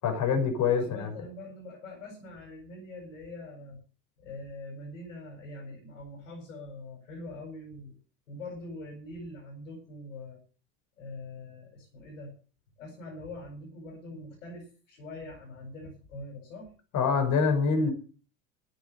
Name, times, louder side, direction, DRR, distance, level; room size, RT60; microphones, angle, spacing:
voice 1, 0.0-1.1 16.9-17.9, left 5 dB, 45° left, 4 dB, 6.0 m, -25 dB
voice 2, 0.8-3.8 4.2-8.0 8.3-10.4 11.0-12.3 12.8-16.7, left 2 dB, 70° left, 0 dB, 8.0 m, -43 dB
15.0 x 9.3 x 7.0 m, 0.39 s
figure-of-eight pair, 65°, 40 cm